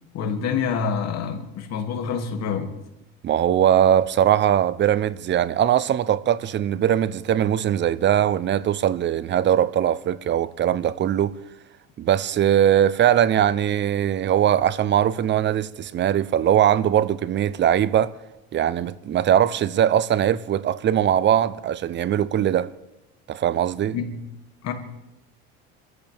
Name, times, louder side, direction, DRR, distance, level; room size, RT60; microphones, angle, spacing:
voice 1, 0.1-2.7 23.9-24.2 24.6-24.7, left 6 dB, 55° left, 2.6 m, -27 dB
voice 2, 3.2-11.4 12.0-18.1 18.5-22.7 23.3-24.0, right 10 dB, 35° right, 0.7 m, -21 dB
28.5 x 14.0 x 3.5 m
supercardioid pair, 105°, 31 cm